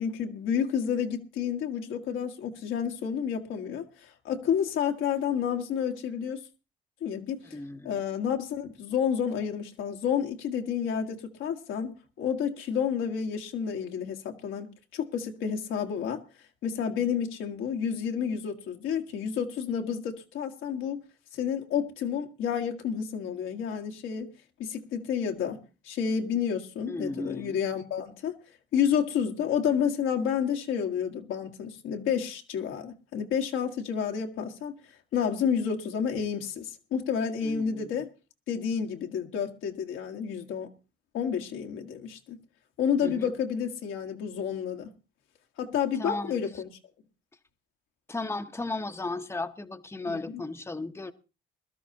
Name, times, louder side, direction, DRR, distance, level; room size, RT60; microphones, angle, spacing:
voice 1, 0.0-6.4 7.0-7.6 7.8-16.2 16.6-21.0 21.3-24.3 24.6-28.4 28.7-34.8 35.1-38.1 38.5-40.7 41.1-42.4 42.8-44.9 45.6-46.7 50.1-50.4, left 7 dB, 85° left, 1.5 m, -30 dB
voice 2, 7.5-8.0 26.9-27.6 37.4-37.9 43.0-43.3 46.0-46.4 48.1-51.1, left 2 dB, 10° left, 0.9 m, -35 dB
21.5 x 12.5 x 2.8 m
cardioid pair, 90°, 20 cm